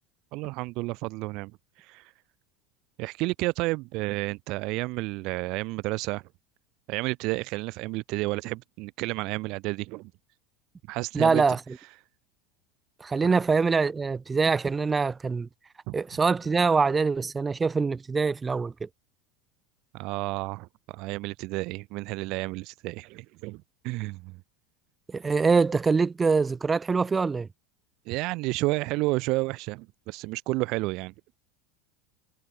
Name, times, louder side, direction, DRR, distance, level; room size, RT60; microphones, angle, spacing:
voice 1, 0.3-1.5 1.8-2.1 3.0-6.2 6.9-10.1 10.9-11.4 15.9-16.0 19.9-24.4 28.1-31.1, right 23 dB, 55° right, 0.4 m, -31 dB
voice 2, 11.1-11.6 13.0-15.5 15.9-18.9 25.1-27.5, right 4 dB, 20° right, 1.7 m, -24 dB
hypercardioid pair, 85°, 0 cm